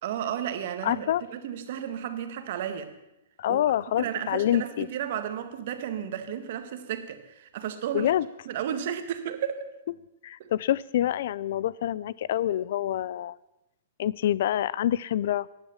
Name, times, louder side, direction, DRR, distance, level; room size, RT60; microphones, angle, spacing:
voice 1, 0.0-2.9 3.5-3.6 4.0-8.1 8.4-9.7 10.4-10.5, right 9 dB, 50° right, 9 dB, 1.8 m, -33 dB
voice 2, 0.8-1.2 3.4-4.9 7.9-8.3 10.2-13.4 14.0-15.5, left 12 dB, 55° left, 21 dB, 0.5 m, -26 dB
15.5 x 10.5 x 7.3 m, 0.92 s
hypercardioid pair, 160°, 0 cm